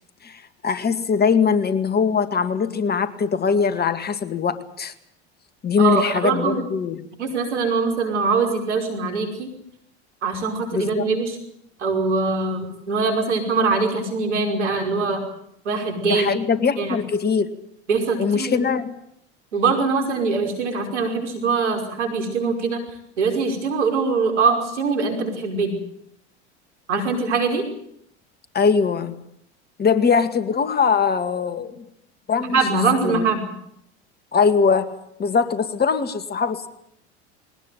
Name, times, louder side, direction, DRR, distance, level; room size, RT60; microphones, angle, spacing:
voice 1, 0.2-4.9 5.6-7.1 10.7-11.1 16.0-17.5 18.2-18.9 28.5-29.2 29.8-31.8 32.3-32.6 33.0-33.3 34.3-34.9 35.2-36.7, left 5 dB, 30° left, 10 dB, 2.2 m, -21 dB
voice 2, 5.8-6.6 7.2-9.5 10.2-11.4 11.8-15.3 15.7-16.3 16.8-17.0 17.9-18.6 19.5-22.8 23.2-25.7 26.9-27.6 32.4-33.4, right 4 dB, 85° right, 4 dB, 5.5 m, -22 dB
21.5 x 18.5 x 9.4 m, 0.74 s
hypercardioid pair, 85°, 34 cm